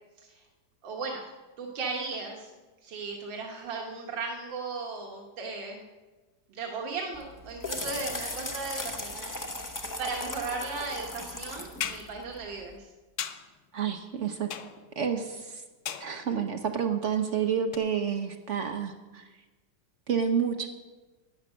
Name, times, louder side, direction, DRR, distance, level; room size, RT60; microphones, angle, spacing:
voice 1, 0.8-1.3 1.6-2.5 2.8-5.8 6.5-9.4 9.6-12.9, right 4 dB, 85° right, 0 dB, 1.9 m, -36 dB
sound 1, 7.1-12.7, left 1 dB, 25° left, 0.4 m, -38 dB
sound 2, 11.8-12.1 13.2-13.5 14.5-15.0 15.9-16.3 17.7-17.8, left 8 dB, 65° left, 0.7 m, -36 dB
voice 2, 13.7-14.5 15.0-15.6 16.0-19.2 20.1-20.7, right 7 dB, 60° right, 6 dB, 0.8 m, -29 dB
11.0 x 9.5 x 6.2 m, 1.2 s
omnidirectional pair, 2.0 m